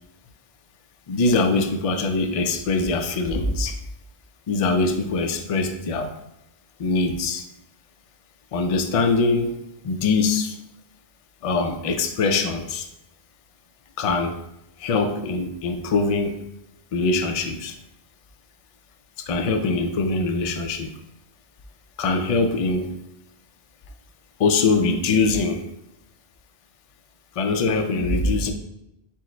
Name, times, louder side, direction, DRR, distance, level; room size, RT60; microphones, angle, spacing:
voice 1, 1.1-3.8 4.5-6.1 6.8-7.4 8.5-10.6 11.4-12.9 14.0-14.4 14.8-16.4 16.9-17.8 19.2-20.9 22.0-22.9 24.4-25.6 27.4-28.5, left 3 dB, 60° left, 6 dB, 0.3 m, -23 dB
4.6 x 2.0 x 4.3 m, 0.87 s
omnidirectional pair, 1.1 m